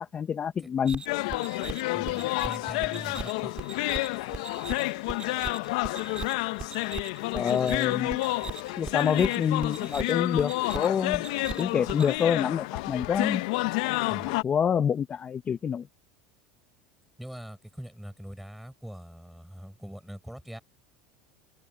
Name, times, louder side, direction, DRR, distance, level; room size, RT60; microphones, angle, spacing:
voice 1, 0.1-1.0 7.3-8.2 8.8-11.2 11.6-13.4 14.4-15.9, left 7 dB, 30° left, 0.6 m, -27 dB
sound 1, 0.9-12.2, right 5 dB, 25° right, 3.5 m, -41 dB
sound 2, 1.1-14.4, left 22 dB, 75° left, 0.7 m, -30 dB
voice 2, 1.9-3.5 14.1-14.4 17.2-20.6, equal, ahead, 5.3 m, -42 dB
open air
supercardioid pair, 100°, 4 cm